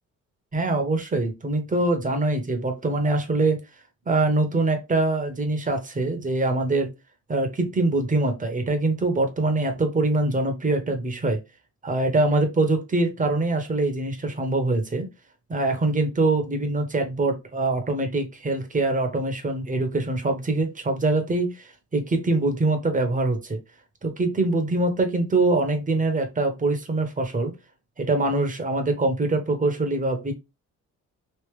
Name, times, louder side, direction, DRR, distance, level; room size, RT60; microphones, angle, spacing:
voice 1, 0.5-3.6 4.1-6.9 7.3-11.4 11.8-15.1 15.5-23.6 24.0-27.5 28.0-30.3, right 2 dB, 25° right, 6 dB, 1.1 m, -24 dB
3.2 x 2.8 x 3.2 m, 0.24 s
cardioid pair, 90°, 30 cm